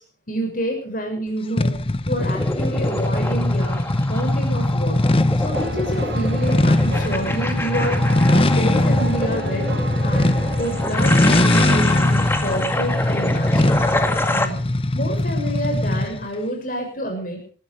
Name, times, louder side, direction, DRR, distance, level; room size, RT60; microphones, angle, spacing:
voice 1, 0.3-1.8 2.1-3.8 4.1-5.1 5.4-8.0 8.5-9.7 10.0-13.8 14.3-14.6 14.9-17.4, right 1 dB, 50° left, 3 dB, 6.5 m, -28 dB
sound 1, 1.6-16.3, left 1 dB, 30° left, 0.9 m, -21 dB
sound 2, 2.2-14.5, left 1 dB, 15° left, 2.0 m, -27 dB
sound 3, 5.5-11.9, right 1 dB, 75° right, 3.3 m, -32 dB
21.0 x 14.0 x 4.8 m, 0.42 s
head